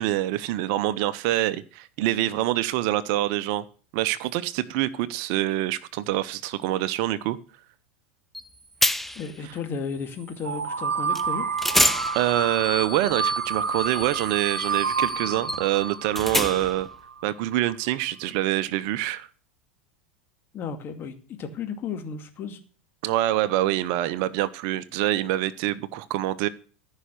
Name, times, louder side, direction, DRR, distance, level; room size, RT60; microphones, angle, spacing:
voice 1, 0.0-3.6 3.9-7.4 12.1-16.9 17.2-19.3 23.0-26.5, right 14 dB, 55° right, 0.8 m, -25 dB
sound 1, 8.3-8.5 8.8-9.3 11.1-11.3 11.6-16.9, left 1 dB, 5° left, 0.7 m, -28 dB
voice 2, 9.2-11.5 20.5-22.6, left 5 dB, 35° left, 2.4 m, -34 dB
sound 2, 10.4-17.2, right 6 dB, 85° right, 1.0 m, -29 dB
14.5 x 5.7 x 6.5 m
hypercardioid pair, 90°, 6 cm